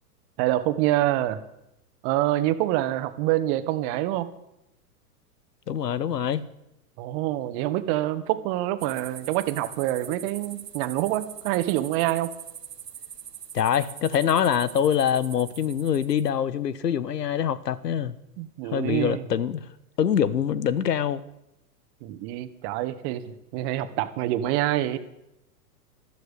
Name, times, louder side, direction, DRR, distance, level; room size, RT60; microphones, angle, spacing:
voice 1, 0.4-1.4 2.0-4.3 7.0-12.3 18.4-19.2 22.0-25.0, right 14 dB, 45° right, 11 dB, 1.5 m, -26 dB
voice 2, 5.7-6.5 13.5-18.2 18.6-19.7 20.0-21.2, left 8 dB, 85° left, 18 dB, 1.2 m, -24 dB
sound 1, 8.8-16.3, right 9 dB, 90° right, 1.4 m, -42 dB
13.0 x 13.0 x 8.3 m, 0.87 s
hypercardioid pair, 115°, 47 cm